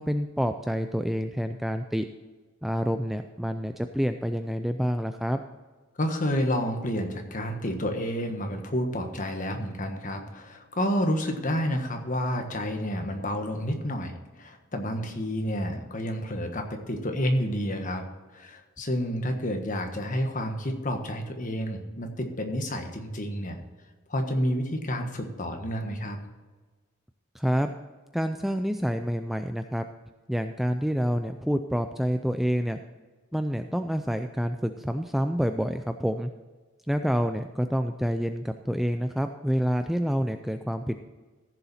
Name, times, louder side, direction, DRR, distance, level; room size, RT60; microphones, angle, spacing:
voice 1, 0.0-2.1 2.6-5.4 27.3-27.7 28.1-29.9 30.3-32.8 33.3-36.3 36.9-41.0, equal, ahead, 7 dB, 0.3 m, -28 dB
voice 2, 6.0-18.1 18.3-23.6 24.1-26.2, equal, 40° left, 4 dB, 1.4 m, -30 dB
15.0 x 7.0 x 4.2 m, 1.3 s
head